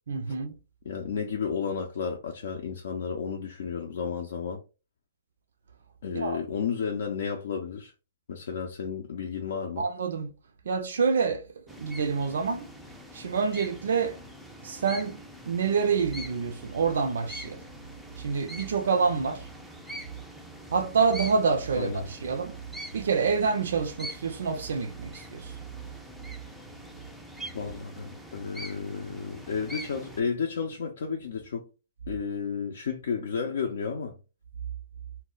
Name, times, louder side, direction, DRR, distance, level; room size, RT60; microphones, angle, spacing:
voice 1, 0.1-0.6 6.1-6.4 9.8-10.3 10.7-12.7 13.1-14.2 14.6-15.2 15.5-17.7 18.2-19.5 20.7-22.5 22.9-25.5, right 5 dB, 70° right, 0.4 m, -27 dB
voice 2, 0.9-4.6 6.0-7.9 8.3-9.8 21.7-22.1 27.5-31.6 32.1-34.2, left 6 dB, 65° left, 0.5 m, -32 dB
sound 1, 11.7-30.2, equal, ahead, 0.4 m, -44 dB
2.1 x 2.0 x 3.7 m
hypercardioid pair, 140°, 0 cm